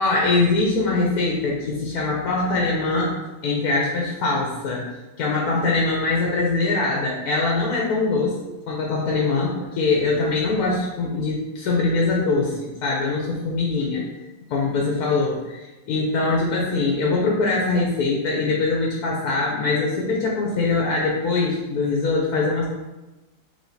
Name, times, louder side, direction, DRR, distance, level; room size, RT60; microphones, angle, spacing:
voice 1, 0.0-3.1 3.4-4.9 5.2-8.4 8.7-14.1 14.5-22.7, left 3 dB, 65° left, -2 dB, 1.1 m, -22 dB
5.2 x 3.5 x 2.6 m, 1.1 s
omnidirectional pair, 1.9 m